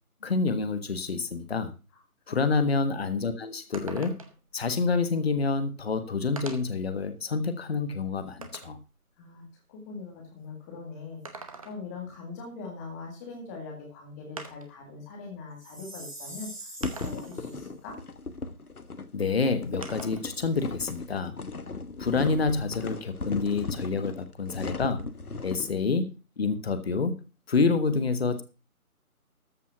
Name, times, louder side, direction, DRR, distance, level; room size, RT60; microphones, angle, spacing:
voice 1, 0.2-1.7 2.3-4.2 4.5-8.8 19.1-21.4 22.0-25.1 25.4-27.2 27.5-28.4, left 4 dB, 45° left, 10 dB, 1.4 m, -28 dB
sound 1, 3.7-4.5 5.5-5.6 6.4-6.8 7.4-8.8 11.0-12.0 13.5-13.6 14.4-14.8 15.8-15.9 16.8-17.4 19.8-20.3 20.7-21.8, right 4 dB, 25° right, 1.0 m, -44 dB
voice 2, 9.2-18.0, left 4 dB, 10° left, 1 dB, 1.9 m, -42 dB
Chime, 15.6-17.6, right 1 dB, 90° right, 3.7 m, -44 dB
sound 2, 16.8-25.7, left 3 dB, 75° left, 1.4 m, -37 dB
14.0 x 5.8 x 6.0 m, 0.32 s
figure-of-eight pair, 155°, 44 cm